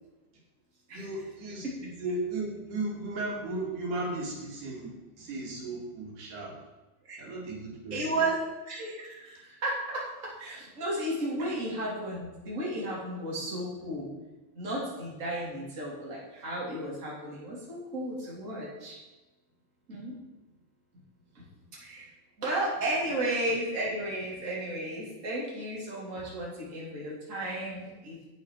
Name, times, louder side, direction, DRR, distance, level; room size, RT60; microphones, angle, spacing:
voice 1, 0.9-6.6 7.2-8.1, right 2 dB, 85° right, -3 dB, 4.1 m, -36 dB
voice 2, 7.9-8.3 8.7-14.1 14.5-19.0 19.9-20.1 21.3-21.5 21.8-22.1 22.4-28.2, right 1 dB, 25° right, -4 dB, 3.4 m, -33 dB
10.5 x 9.3 x 4.8 m, 1.1 s
omnidirectional pair, 3.6 m